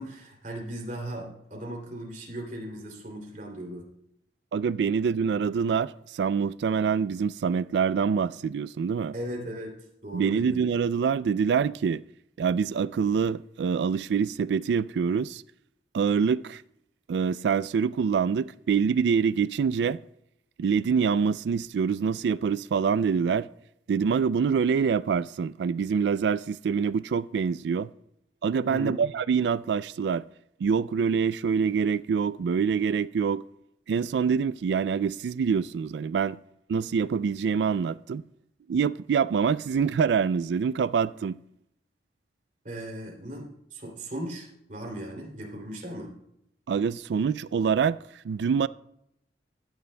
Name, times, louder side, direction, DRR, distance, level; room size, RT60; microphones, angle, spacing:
voice 1, 0.0-3.9 9.1-9.7 10.0-10.6 28.7-29.0 42.6-46.1, right 1 dB, 45° right, 2.8 m, -37 dB
voice 2, 4.5-9.1 10.1-12.0 12.4-15.4 15.9-16.6 17.1-20.0 20.6-23.5 23.9-27.9 28.4-30.2 30.6-33.4 33.9-36.4 36.7-38.2 38.7-41.4 46.7-48.0 48.2-48.7, right 6 dB, 70° right, 0.3 m, -25 dB
15.5 x 9.4 x 2.2 m
head